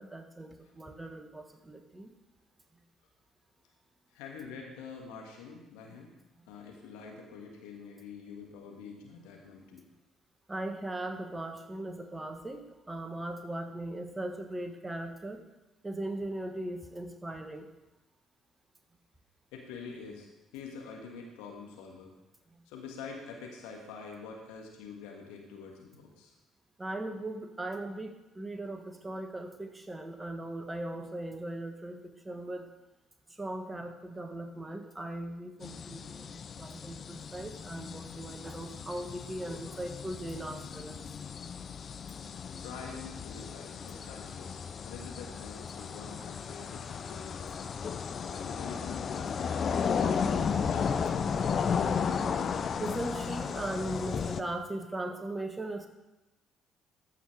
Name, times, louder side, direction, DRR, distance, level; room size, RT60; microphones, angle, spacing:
voice 1, 0.0-2.1 5.9-6.0 6.4-6.5 10.5-15.5 15.8-17.7 22.5-22.6 26.8-32.7 33.3-41.0 42.2-42.3 52.8-55.9, right 1 dB, 20° right, 6 dB, 1.4 m, -39 dB
voice 2, 4.1-6.1 6.5-9.8 19.5-22.1 22.6-26.3 42.6-47.8 48.3-51.0, left 5 dB, 70° left, 1 dB, 1.6 m, -46 dB
sound 1, 35.6-54.4, left 6 dB, 45° left, 0.5 m, -34 dB
14.0 x 5.8 x 4.8 m, 0.99 s
figure-of-eight pair, 50°, 0 cm